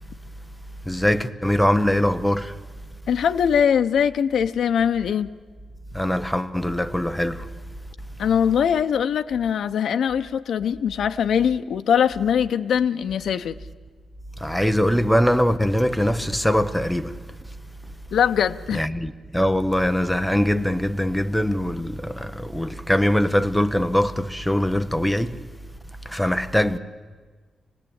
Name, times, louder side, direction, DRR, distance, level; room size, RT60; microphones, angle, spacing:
voice 1, 0.8-2.6 5.9-7.5 14.4-17.2 18.7-25.5 26.0-26.8, equal, ahead, 0.8 m, -22 dB
voice 2, 3.1-5.3 8.2-13.6 18.1-18.9, left 8 dB, 85° left, 0.6 m, -22 dB
25.5 x 18.5 x 8.7 m
wide cardioid pair, 170°, 0 cm